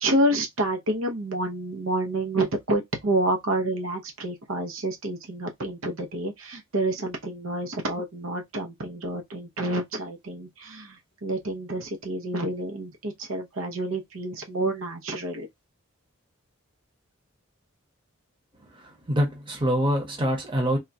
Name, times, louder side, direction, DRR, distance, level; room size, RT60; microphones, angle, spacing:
voice 1, 0.0-15.5, right 1 dB, 75° right, 0.8 m, -28 dB
voice 2, 18.7-20.8, equal, 25° right, 1.0 m, -25 dB
3.6 x 2.3 x 2.6 m
head